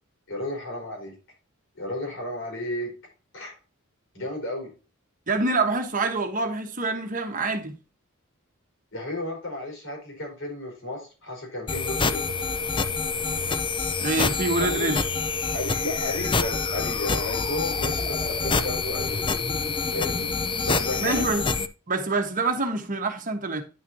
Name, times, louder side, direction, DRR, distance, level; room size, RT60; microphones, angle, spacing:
voice 1, 0.3-1.1 1.7-2.9 3.3-3.5 4.1-4.7 8.9-12.3 14.6-14.9 15.5-19.2 19.9-20.3 20.6-21.2, left 1 dB, 60° left, 4.4 m, -33 dB
voice 2, 5.3-7.7 14.0-15.0 21.0-21.4 21.9-23.6, right 3 dB, 40° right, 1.2 m, -26 dB
sound 1, 11.7-21.7, left 4 dB, 25° left, 0.4 m, -27 dB
9.8 x 5.8 x 2.7 m
head